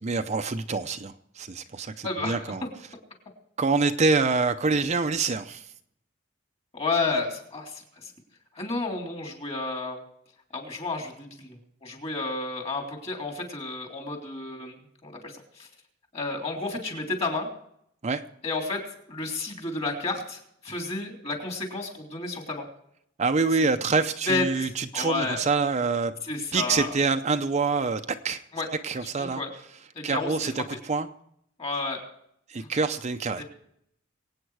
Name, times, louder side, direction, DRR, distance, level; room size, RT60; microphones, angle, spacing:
voice 1, 0.0-2.6 3.6-5.7 18.0-18.2 23.2-26.1 26.5-28.4 28.8-29.4 30.0-31.1 32.5-33.4, right 4 dB, 35° right, 7 dB, 0.6 m, -26 dB
voice 2, 2.0-2.4 6.7-8.1 8.5-10.0 10.5-15.7 16.1-17.5 18.4-18.8 19.1-22.7 23.6-23.7 24.3-25.4 26.2-26.9 28.5-28.7 29.0-29.5 29.9-30.3 30.7-30.8 31.6-32.0 32.6-32.7 33.4-33.5, left 3 dB, 30° left, 2 dB, 3.2 m, -31 dB
23.0 x 8.9 x 4.8 m, 0.72 s
head